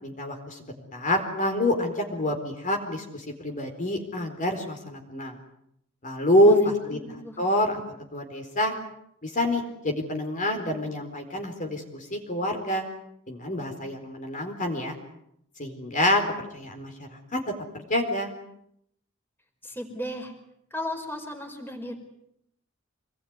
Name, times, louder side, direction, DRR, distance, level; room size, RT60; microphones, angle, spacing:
voice 1, 0.0-5.4 6.0-6.6 6.9-7.0 7.4-7.8 8.1-8.7 9.2-12.8 13.3-14.9 15.6-16.2 16.5-17.4 17.7-18.3, left 1 dB, 40° left, 3 dB, 4.3 m, -26 dB
voice 2, 6.4-7.4 19.6-20.3 20.7-21.9, left 1 dB, 10° left, 4 dB, 4.9 m, -35 dB
27.0 x 21.0 x 9.6 m, 0.76 s
head